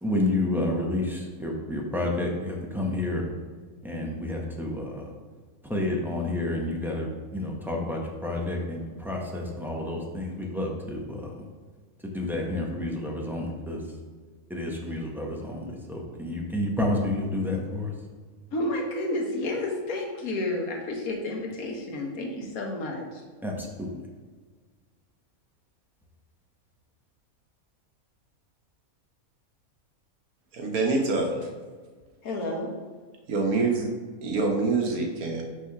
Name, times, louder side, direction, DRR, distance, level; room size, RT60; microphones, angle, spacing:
voice 1, 0.0-3.2 3.8-5.1 5.6-11.5 12.1-13.8 14.5-17.9 23.4-23.9, left 2 dB, ahead, -1 dB, 0.6 m, -30 dB
voice 2, 18.5-23.2 32.2-32.7, left 2 dB, 80° left, 1 dB, 1.4 m, -31 dB
voice 3, 30.5-31.5 33.3-33.9 34.2-35.4, right 3 dB, 80° right, 2 dB, 1.4 m, -25 dB
6.1 x 3.3 x 5.7 m, 1.5 s
omnidirectional pair, 1.5 m